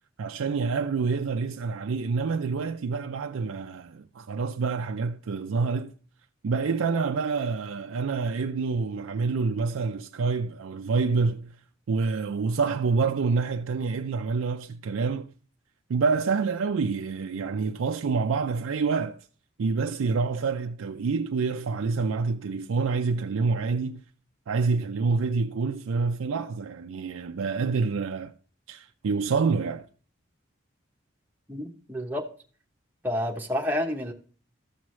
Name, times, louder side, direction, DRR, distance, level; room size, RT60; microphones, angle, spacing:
voice 1, 0.2-5.9 6.4-11.6 11.9-15.3 15.9-19.2 19.6-24.0 24.5-28.3 28.7-29.9, right 4 dB, 90° right, 0.4 m, -27 dB
voice 2, 31.5-32.2 33.0-34.1, left 1 dB, 10° right, 0.9 m, -29 dB
13.5 x 6.1 x 3.1 m
head